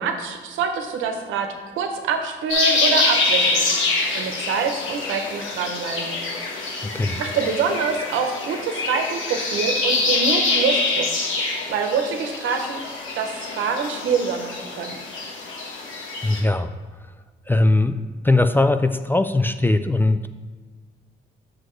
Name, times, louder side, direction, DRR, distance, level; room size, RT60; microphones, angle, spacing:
voice 1, 0.0-1.5 1.8-3.7 4.1-6.2 7.2-11.1 11.7-12.8 13.1-15.0, right 5 dB, 85° right, 5 dB, 0.9 m, -25 dB
sound 1, 2.5-16.4, left 3 dB, 85° left, 1.5 m, -25 dB
voice 2, 6.8-7.2 16.2-16.7 17.5-20.3, left 2 dB, 10° left, 9 dB, 0.3 m, -20 dB
7.8 x 6.3 x 3.2 m, 1.5 s
cardioid pair, 90°, 20 cm